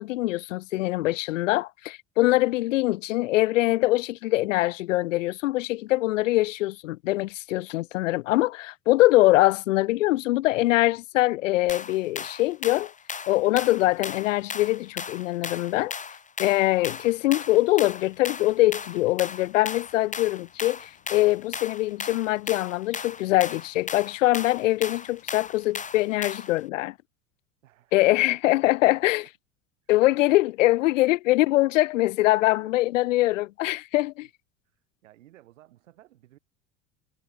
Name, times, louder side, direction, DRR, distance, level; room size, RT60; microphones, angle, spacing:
voice 1, 0.0-12.9 13.3-15.9 16.4-26.9 27.9-29.3 29.9-34.3, left 17 dB, 85° left, 0.7 m, -23 dB
sound 1, 11.7-26.6, left 6 dB, 20° left, 1.1 m, -37 dB
sound 2, 16.7-26.3, left 20 dB, 60° left, 7.1 m, -63 dB
voice 2, 27.6-28.6 29.8-30.2 31.2-31.3 32.5-33.2 35.0-36.4, right 14 dB, 85° right, 7.4 m, -57 dB
hypercardioid pair, 75°, 37 cm